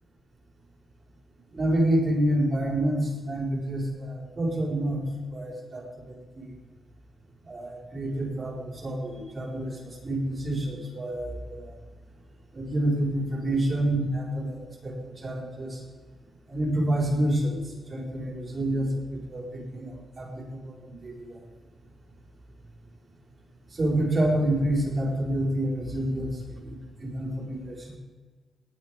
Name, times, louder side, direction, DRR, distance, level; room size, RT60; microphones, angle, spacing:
voice 1, 1.5-5.1 5.3-6.5 7.4-11.7 12.5-15.8 16.5-17.6 17.9-21.4 23.7-28.0, right 1 dB, 40° right, -1 dB, 4.2 m, -28 dB
18.5 x 9.2 x 4.7 m, 1.4 s
cardioid pair, 105°, 0 cm